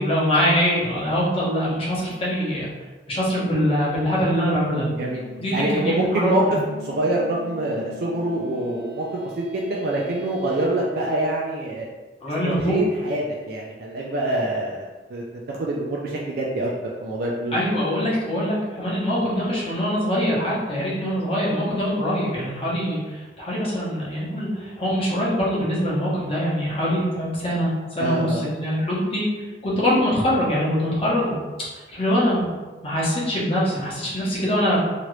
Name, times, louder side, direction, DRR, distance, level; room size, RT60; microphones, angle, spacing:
voice 1, 0.0-2.7 3.1-4.9 5.4-6.6 12.2-12.8 17.5-29.2 29.6-31.4 31.9-32.5 32.8-34.8, equal, 30° left, -7 dB, 1.0 m, -23 dB
sound 1, 4.4-10.7, left 4 dB, 65° left, 0.6 m, -42 dB
voice 2, 4.9-5.2 5.5-11.9 12.4-14.8 15.1-17.6 28.0-28.4, right 1 dB, 60° right, -3 dB, 0.4 m, -25 dB
3.0 x 2.5 x 3.1 m, 1.3 s
head